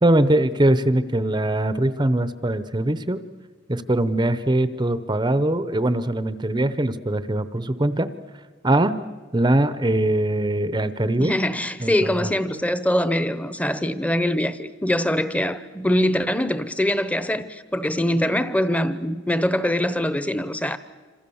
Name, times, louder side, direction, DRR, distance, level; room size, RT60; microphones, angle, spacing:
voice 1, 0.0-3.2 3.7-8.1 8.6-8.9 9.3-11.3 11.8-12.3, right 1 dB, 20° right, 0.7 m, -21 dB
voice 2, 11.2-20.8, left 1 dB, 5° left, 0.9 m, -23 dB
27.5 x 26.5 x 7.1 m
head